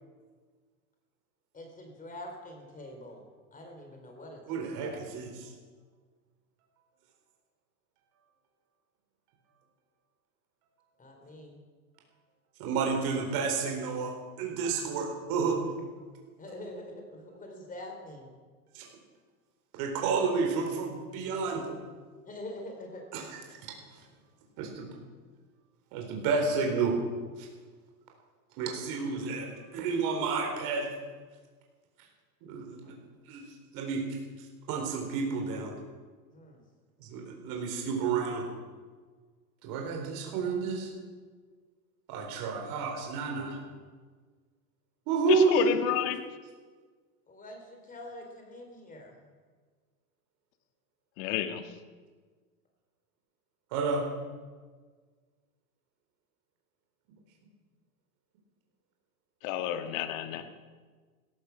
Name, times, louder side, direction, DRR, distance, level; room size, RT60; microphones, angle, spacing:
voice 1, 1.5-5.1 11.0-11.6 16.4-18.3 22.3-23.0 36.3-36.6 47.3-49.3, left 1 dB, 20° left, 3 dB, 4.2 m, -45 dB
voice 2, 4.5-5.5 12.6-15.6 18.7-18.9 19.8-21.8 23.1-23.4 23.7-23.8 24.6-24.9 25.9-27.0 27.4-27.5 28.6-30.9 32.4-32.9 33.2-33.5 33.7-34.0 34.7-35.7 37.0-38.5 39.6-40.9 42.1-43.6 45.1-45.7 53.7-54.0, right 5 dB, 50° right, 1 dB, 4.2 m, -30 dB
voice 3, 45.3-46.3 51.2-51.6 59.4-60.4, left 10 dB, 55° left, 8 dB, 1.7 m, -29 dB
17.0 x 14.0 x 6.1 m, 1.5 s
hypercardioid pair, 120°, 45 cm